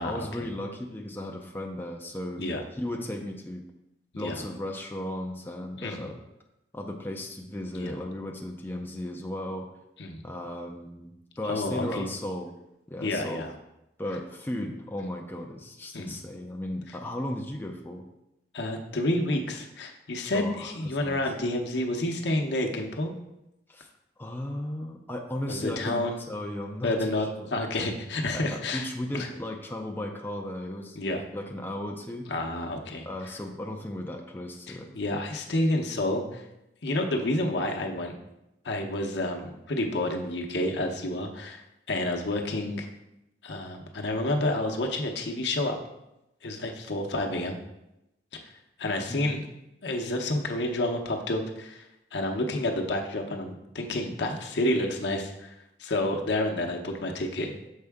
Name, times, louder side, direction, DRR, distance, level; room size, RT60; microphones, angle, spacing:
voice 1, 0.0-2.4 2.7-3.6 4.2-6.2 6.7-9.7 10.2-12.5 12.9-13.5 14.0-18.0 20.3-21.2 23.7-23.9 24.2-27.5 28.3-32.3 33.0-35.0 49.1-49.4, left 1 dB, 10° left, 1 dB, 0.4 m, -36 dB
voice 2, 5.8-6.1 7.7-8.0 10.0-10.2 11.4-12.1 13.0-13.5 15.9-16.2 18.5-23.1 25.5-26.2 26.8-28.9 29.1-29.3 30.9-31.2 32.3-33.1 34.7-36.4 36.8-38.2 38.6-42.9 43.4-45.8 46.4-47.6 48.8-49.4 49.8-51.8 52.1-55.5 55.8-57.6, left 1 dB, 70° left, 2 dB, 0.8 m, -29 dB
6.5 x 4.6 x 3.5 m, 0.89 s
head